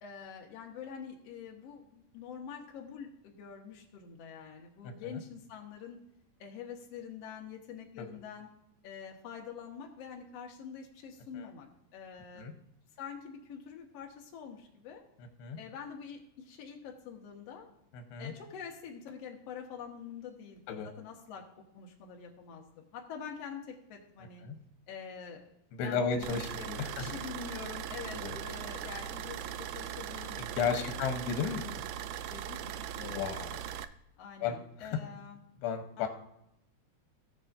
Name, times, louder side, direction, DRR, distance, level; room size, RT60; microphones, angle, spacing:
voice 1, 0.0-6.0 6.4-8.5 8.8-11.7 11.9-12.5 13.0-15.0 15.6-17.7 18.2-21.4 21.7-24.4 24.9-25.5 25.8-31.0 32.3-33.3 34.2-35.4 36.0-36.1, left 7 dB, 60° left, 1 dB, 1.7 m, -46 dB
voice 2, 17.9-18.3 20.7-20.9 24.4-24.6 25.7-27.0 28.1-28.4 30.4-31.9 32.9-33.6 34.4-34.6 35.6-36.1, left 6 dB, 85° left, 5 dB, 3.0 m, -34 dB
sound 1, 26.2-33.8, right 10 dB, 90° right, 2.1 m, -40 dB
18.0 x 6.8 x 2.5 m, 0.79 s
omnidirectional pair, 4.7 m